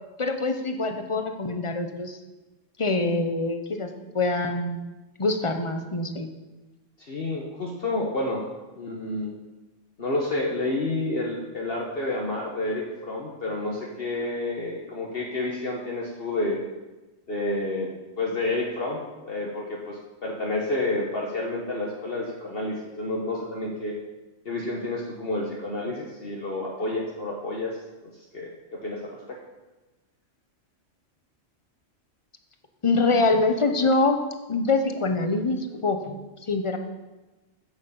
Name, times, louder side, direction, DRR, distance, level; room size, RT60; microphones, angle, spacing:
voice 1, 0.2-2.2 2.8-4.8 5.2-6.3 32.8-34.2 34.5-36.2 36.5-36.8, left 3 dB, 30° left, 6 dB, 0.9 m, -24 dB
voice 2, 7.0-8.4 8.8-9.3 10.0-16.6 17.3-17.9 18.2-23.9 24.4-27.8 28.0-29.4, left 2 dB, 50° left, -2 dB, 1.4 m, -30 dB
8.3 x 8.2 x 7.0 m, 1.1 s
omnidirectional pair, 1.3 m